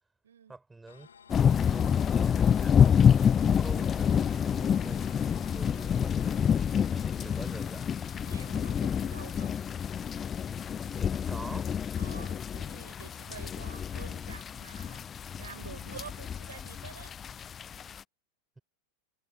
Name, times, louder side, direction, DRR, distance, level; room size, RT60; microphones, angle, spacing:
voice 1, 0.5-1.1 1.3-7.9 10.7-11.7, right 3 dB, 10° right, 5.7 m, -47 dB
sound 1, 0.9-17.9, left 7 dB, 90° left, 3.0 m, -59 dB
sound 2, 1.3-18.0, left 8 dB, 25° left, 0.3 m, -28 dB
voice 2, 8.2-9.6 12.0-17.1, right 8 dB, 80° right, 7.9 m, -48 dB
hypercardioid pair, 100°, 0 cm